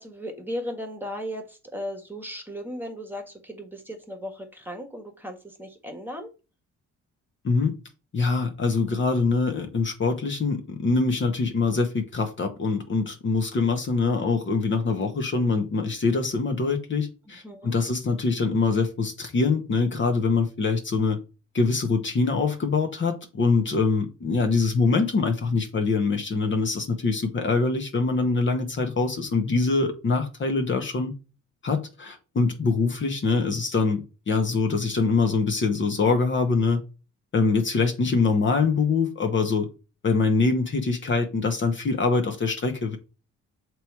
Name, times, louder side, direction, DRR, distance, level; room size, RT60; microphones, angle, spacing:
voice 1, 0.0-6.3 17.4-17.7, equal, 5° right, 1.5 m, -36 dB
voice 2, 8.1-21.2 21.5-31.1 31.6-36.8 37.3-39.7 40.0-43.0, left 4 dB, 40° left, 1.1 m, -24 dB
6.7 x 3.1 x 4.6 m
cardioid pair, 90°, 30 cm